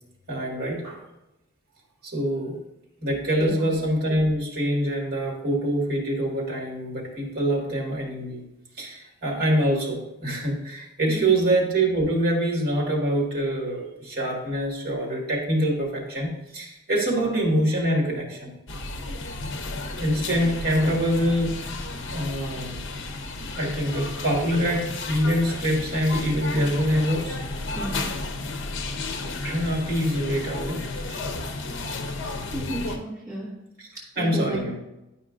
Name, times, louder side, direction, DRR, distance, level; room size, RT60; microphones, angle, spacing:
voice 1, 0.3-1.0 2.0-2.6 3.0-8.4 8.8-18.5 20.0-21.8 22.1-22.8 23.5-27.4 29.4-31.2 33.8-33.9 34.1-34.8, right 1 dB, 50° right, -1 dB, 1.7 m, -25 dB
voice 2, 3.4-3.7 11.1-11.4 27.7-28.1 32.5-33.5 34.2-34.8, right 1 dB, 15° right, -6 dB, 1.3 m, -32 dB
sound 1, 18.7-33.0, left 2 dB, 60° left, 0.7 m, -33 dB
9.7 x 5.4 x 2.5 m, 0.93 s
head